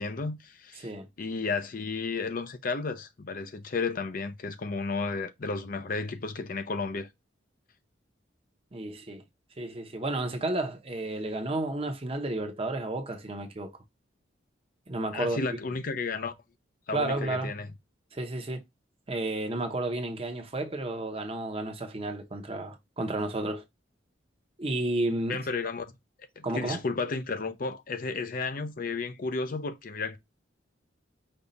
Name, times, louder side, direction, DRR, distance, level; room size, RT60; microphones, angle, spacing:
voice 1, 0.0-0.9 1.2-7.1 15.1-16.3 16.9-17.7 25.3-25.9 26.4-30.2, left 4 dB, 45° left, 0.5 m, -33 dB
voice 2, 0.8-1.1 8.7-9.2 9.6-13.8 14.9-15.4 16.9-17.5 18.1-18.6 19.1-23.6 24.6-25.4 26.4-26.8, right 2 dB, 30° right, 0.8 m, -32 dB
5.3 x 2.4 x 4.0 m
head